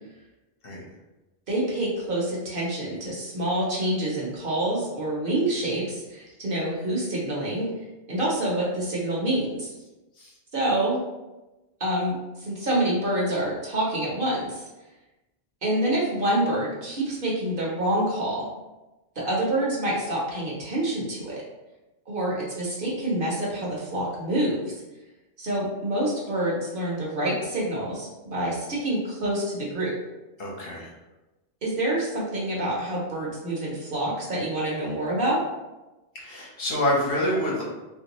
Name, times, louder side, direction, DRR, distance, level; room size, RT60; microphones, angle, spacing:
voice 1, 1.5-7.7 8.1-9.7 10.5-11.0 11.8-14.7 15.6-18.5 19.2-21.4 22.1-24.7 25.4-29.9 31.6-35.4, right 1 dB, 50° right, -5 dB, 0.9 m, -27 dB
voice 2, 30.4-30.9 36.1-37.6, left 1 dB, 55° left, -4 dB, 0.9 m, -27 dB
3.1 x 2.6 x 2.9 m, 1.0 s
omnidirectional pair, 1.2 m